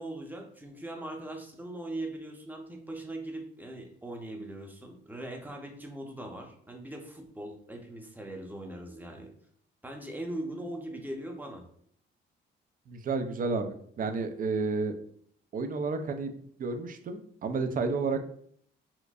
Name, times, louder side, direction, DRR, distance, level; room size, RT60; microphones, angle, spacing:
voice 1, 0.0-9.3 9.8-11.6, right 1 dB, 10° right, 2 dB, 0.7 m, -40 dB
voice 2, 12.9-14.9 15.5-18.2, right 4 dB, 45° right, 7 dB, 0.5 m, -31 dB
4.3 x 2.6 x 2.4 m, 0.62 s
cardioid pair, 90°, 20 cm